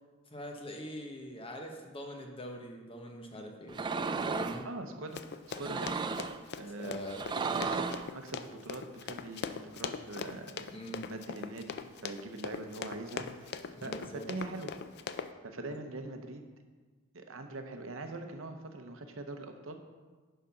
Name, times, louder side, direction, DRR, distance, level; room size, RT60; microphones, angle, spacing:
voice 1, 0.3-3.8 4.2-4.7 6.8-7.2 10.7-11.1 13.7-14.2 15.6-15.7, equal, 25° left, 2 dB, 0.9 m, -43 dB
sound 1, 3.7-4.6 5.5-6.4 7.1-8.1, right 4 dB, 20° right, 0.3 m, -34 dB
voice 2, 4.6-5.9 6.6-7.1 7.4-7.8 8.1-10.6 11.0-14.7 15.4-16.4 17.1-19.8, right 2 dB, 75° right, 6 dB, 0.8 m, -42 dB
Run, 5.1-15.3, left 6 dB, 55° left, 0.4 m, -41 dB
10.0 x 3.9 x 5.7 m, 1.4 s
head